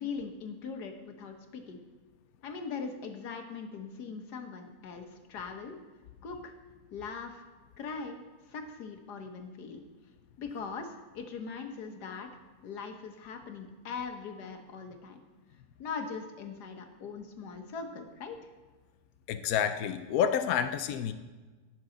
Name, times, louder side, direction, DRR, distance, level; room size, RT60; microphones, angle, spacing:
voice 1, 0.0-1.8 2.4-5.8 6.2-6.5 6.9-7.4 7.8-8.2 8.5-9.8 10.4-12.3 12.6-15.2 15.8-18.4, left 5 dB, 90° left, 5 dB, 1.7 m, -40 dB
voice 2, 19.3-21.1, left 8 dB, 70° left, 9 dB, 1.0 m, -29 dB
18.5 x 6.2 x 3.9 m, 1.3 s
omnidirectional pair, 1.7 m